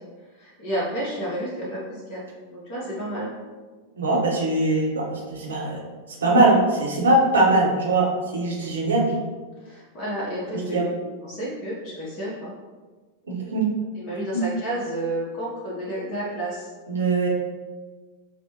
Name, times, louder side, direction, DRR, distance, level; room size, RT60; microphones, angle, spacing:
voice 1, 0.3-2.2 2.5-3.3 8.6-8.8 9.6-10.9 11.2-12.5 14.0-16.7, right 1 dB, 35° left, -6 dB, 0.9 m, -31 dB
voice 2, 4.0-5.8 6.2-9.1 10.7-10.9 13.3-13.7 14.3-14.4 16.9-17.3, right 2 dB, 70° right, -1 dB, 0.8 m, -21 dB
5.8 x 2.1 x 2.8 m, 1.4 s
figure-of-eight pair, 90°, 0 cm